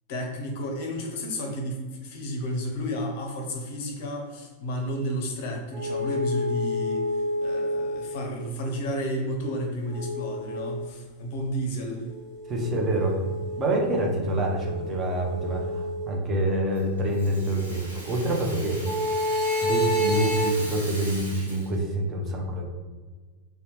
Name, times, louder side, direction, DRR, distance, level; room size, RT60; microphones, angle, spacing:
voice 1, 0.1-12.1 12.9-13.2, equal, 50° left, 2 dB, 0.5 m, -32 dB
sound 1, 5.7-8.2 9.9-10.8 12.1-16.1 18.8-20.5, left 1 dB, 10° right, 1.1 m, -29 dB
voice 2, 12.5-13.2 13.6-18.8 19.6-22.6, right 1 dB, 25° right, 0 dB, 0.5 m, -26 dB
Rattle (instrument), 16.7-21.8, right 1 dB, 80° right, 0.7 m, -40 dB
2.7 x 2.1 x 3.0 m, 1.4 s
figure-of-eight pair, 90°, 0 cm